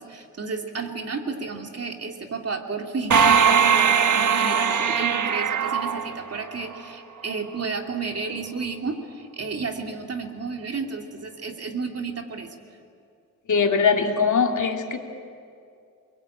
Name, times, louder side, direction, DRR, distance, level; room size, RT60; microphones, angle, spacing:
voice 1, 0.0-12.5, right 4 dB, 45° right, 3 dB, 2.8 m, -32 dB
sound 1, 3.1-6.8, right 6 dB, 65° right, 1.3 m, -20 dB
voice 2, 13.5-15.0, left 5 dB, 65° left, 3 dB, 2.6 m, -21 dB
29.0 x 22.0 x 8.7 m, 2.4 s
cardioid pair, 90°, 33 cm